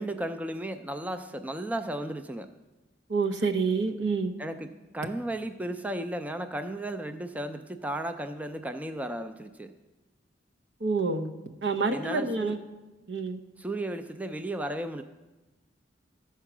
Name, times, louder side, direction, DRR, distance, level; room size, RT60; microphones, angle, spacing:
voice 1, 0.0-2.5 4.4-4.7 4.9-9.7 11.9-12.6 13.6-15.0, right 1 dB, 10° right, 8 dB, 0.4 m, -34 dB
voice 2, 3.1-4.3 10.8-11.3 11.6-12.6 13.1-13.4, right 4 dB, 75° right, 6 dB, 0.8 m, -27 dB
13.5 x 4.5 x 6.0 m, 1.1 s
head